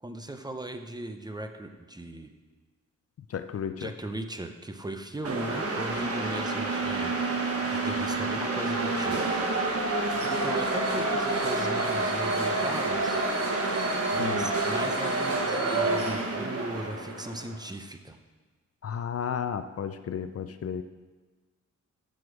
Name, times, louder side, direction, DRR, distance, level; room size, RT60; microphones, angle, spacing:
voice 1, 0.0-2.3 3.8-7.1 7.7-9.3 10.2-13.2 14.1-18.2, right 1 dB, 15° right, 6 dB, 0.6 m, -38 dB
voice 2, 3.3-3.9 14.2-14.7 18.8-20.8, left 7 dB, 50° left, 10 dB, 0.5 m, -33 dB
sound 1, 5.2-17.5, right 2 dB, 50° right, 1.3 m, -28 dB
13.0 x 6.3 x 4.8 m, 1.3 s
wide cardioid pair, 130°, 30 cm